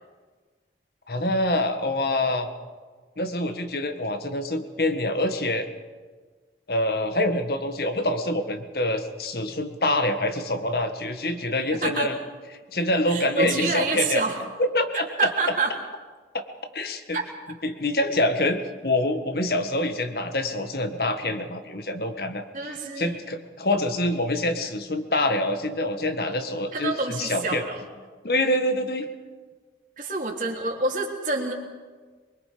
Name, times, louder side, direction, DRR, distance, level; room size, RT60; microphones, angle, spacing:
voice 1, 1.1-2.5 3.2-5.7 6.7-12.2 12.7-14.2 14.6-15.1 16.7-17.2 17.6-22.4 23.0-27.6 28.2-29.1, left 1 dB, 60° left, 7 dB, 1.7 m, -26 dB
voice 2, 13.1-14.4 15.2-15.7 17.1-17.2 22.5-23.2 26.7-27.9 30.0-31.5, right 3 dB, 45° right, 0 dB, 3.2 m, -27 dB
24.5 x 23.0 x 5.2 m, 1.4 s
head